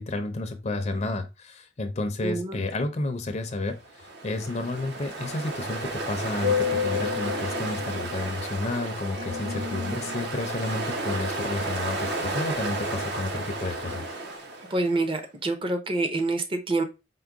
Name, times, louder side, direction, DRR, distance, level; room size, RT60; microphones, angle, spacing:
voice 1, 0.0-14.0, left 2 dB, 40° left, 0.5 m, -31 dB
voice 2, 2.2-2.6 14.7-16.8, right 2 dB, 30° right, 0.6 m, -27 dB
Ocean, 3.9-14.9, left 1 dB, 65° right, 0.8 m, -31 dB
4.5 x 2.1 x 3.5 m
head